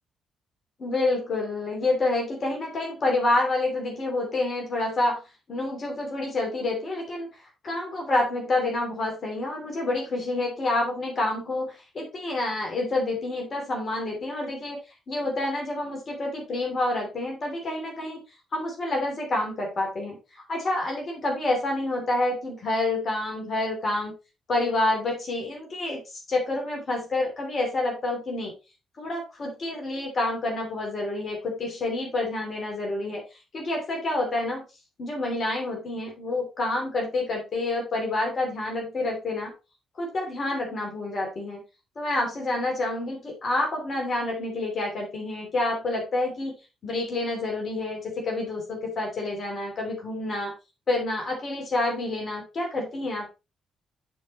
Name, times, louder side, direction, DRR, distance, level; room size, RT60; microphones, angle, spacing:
voice 1, 0.8-5.2 5.5-7.3 7.6-14.8 15.1-18.2 18.5-20.2 20.5-24.1 24.5-26.0 26.3-28.5 29.0-33.2 33.5-34.6 35.0-39.5 40.0-41.6 42.0-46.5 46.8-50.5 50.9-53.3, left 2 dB, 50° left, 0 dB, 2.9 m, -28 dB
9.1 x 4.7 x 3.1 m, 0.27 s
hypercardioid pair, 45°, 0 cm